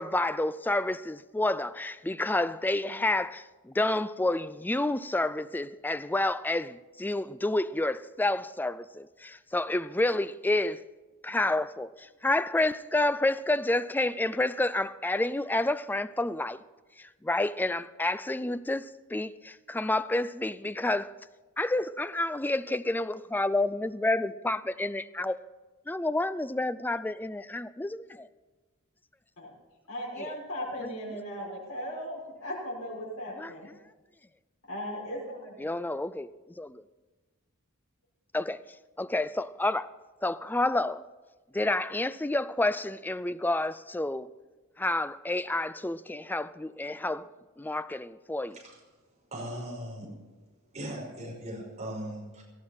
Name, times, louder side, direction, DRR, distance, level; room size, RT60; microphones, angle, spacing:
voice 1, 0.0-10.8 11.2-16.6 17.0-21.1 21.6-25.4 25.9-28.3 30.2-30.3 30.8-30.9 33.4-33.5 35.6-36.3 36.6-36.8 38.3-38.6 39.0-39.9 40.2-41.0 41.5-44.3 44.8-47.3 47.6-48.6, left 2 dB, 10° left, 0.4 m, -29 dB
voice 2, 29.9-33.7 34.7-35.8, equal, 80° left, 5.6 m, -37 dB
voice 3, 49.3-50.1 50.7-52.4, right 1 dB, 30° right, 5.6 m, -38 dB
18.0 x 14.0 x 4.4 m
head